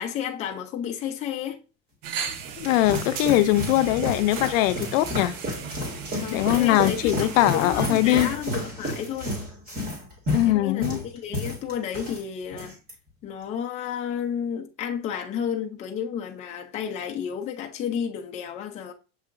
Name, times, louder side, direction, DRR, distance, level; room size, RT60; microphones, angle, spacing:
voice 1, 0.0-1.6 6.1-9.4 10.5-12.8 13.2-18.9, left 8 dB, 20° left, 0.4 m, -32 dB
sound 1, 2.0-8.4, right 8 dB, 90° right, 0.8 m, -37 dB
sound 2, 2.3-12.2 12.5-12.9, left 1 dB, 25° right, 1.7 m, -31 dB
voice 2, 2.6-5.3 6.3-8.3 10.3-11.0, left 15 dB, 85° left, 0.5 m, -21 dB
7.0 x 2.8 x 2.5 m
cardioid pair, 170°, 38 cm